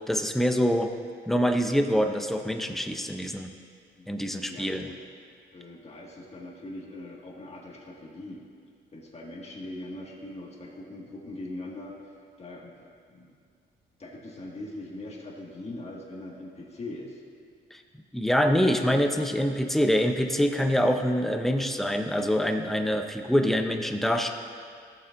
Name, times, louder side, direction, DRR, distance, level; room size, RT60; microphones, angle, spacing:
voice 1, 0.1-1.0 1.3-3.5 4.1-4.9 17.7-17.8 18.1-24.3, equal, ahead, 5 dB, 0.6 m, -25 dB
voice 2, 4.4-5.0 5.5-8.4 8.9-11.9 12.4-12.7 13.1-13.3 14.0-17.2, left 2 dB, 30° left, -3 dB, 1.8 m, -41 dB
15.0 x 6.9 x 2.6 m, 2.2 s
cardioid pair, 90°, 20 cm